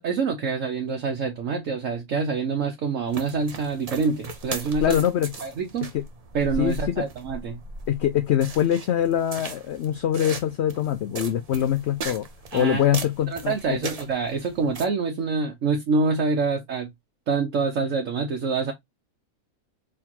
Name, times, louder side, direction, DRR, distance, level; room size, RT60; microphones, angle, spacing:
voice 1, 0.0-5.0 5.4-5.9 6.3-7.6 12.5-12.8 13.3-16.9 17.3-18.7, right 4 dB, 65° right, 1.3 m, -26 dB
sound 1, 3.1-14.9, right 3 dB, 40° right, 0.6 m, -38 dB
voice 2, 4.8-5.3 5.9-6.0 6.6-7.0 7.9-12.3 12.5-13.8, left 10 dB, 60° left, 0.8 m, -23 dB
4.4 x 3.6 x 2.9 m
omnidirectional pair, 1.5 m